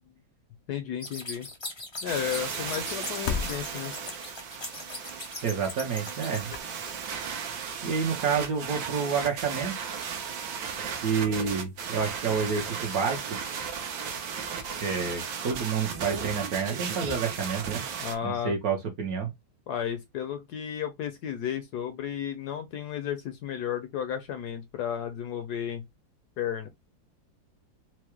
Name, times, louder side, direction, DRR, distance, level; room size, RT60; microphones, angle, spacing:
voice 1, 0.7-1.5 2.0-3.9 18.0-18.6 19.7-25.8 26.4-26.7, left 9 dB, 70° left, 1.0 m, -33 dB
sound 1, 1.0-6.4, left 2 dB, 30° left, 0.4 m, -40 dB
sound 2, 2.1-18.2, right 6 dB, 75° right, 1.6 m, -35 dB
sound 3, 2.8-4.4 6.0-6.1 6.4-7.3 7.7-7.9, left 7 dB, 90° left, 0.7 m, -35 dB
voice 2, 5.4-6.5 7.8-9.7 11.0-13.4 14.8-17.8 18.2-19.3, right 6 dB, 60° right, 1.1 m, -29 dB
4.6 x 2.1 x 2.9 m
omnidirectional pair, 2.1 m